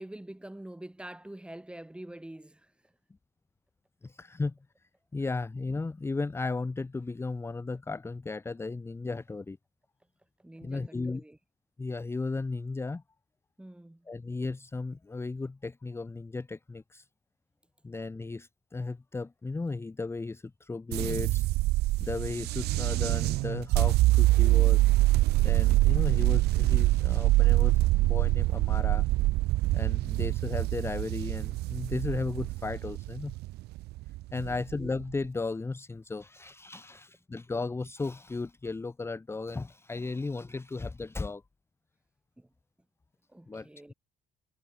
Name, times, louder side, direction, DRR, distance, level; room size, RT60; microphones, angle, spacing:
voice 1, 0.0-2.9 10.4-11.4 13.6-14.1 34.4-34.6 42.4-42.5 43.3-43.9, right 1 dB, 5° right, 1.8 m, -46 dB
voice 2, 4.0-9.6 10.6-11.2 11.8-13.0 14.1-17.1 17.8-21.4 22.0-24.8 25.4-29.1 29.7-33.3 34.3-41.4 43.5-43.9, left 3 dB, 15° left, 0.8 m, -35 dB
sound 1, 20.9-35.1, right 18 dB, 75° right, 0.5 m, -25 dB
cardioid pair, 110°, 17 cm